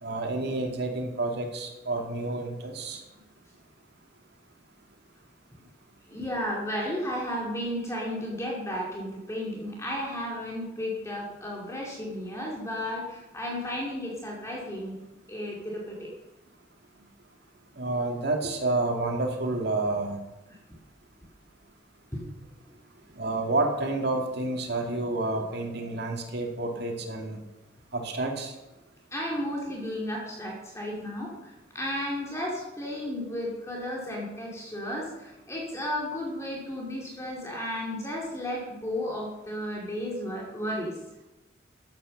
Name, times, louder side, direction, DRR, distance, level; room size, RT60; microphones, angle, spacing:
voice 1, 0.0-3.0 17.8-20.2 23.2-27.4 27.9-28.5, right 2 dB, 60° right, 2 dB, 2.4 m, -29 dB
voice 2, 6.1-15.0 15.3-16.1 20.5-20.6 22.1-22.2 22.6-22.7 29.1-41.0, left 1 dB, 15° left, -2 dB, 2.4 m, -33 dB
13.5 x 8.8 x 6.6 m, 1.0 s
head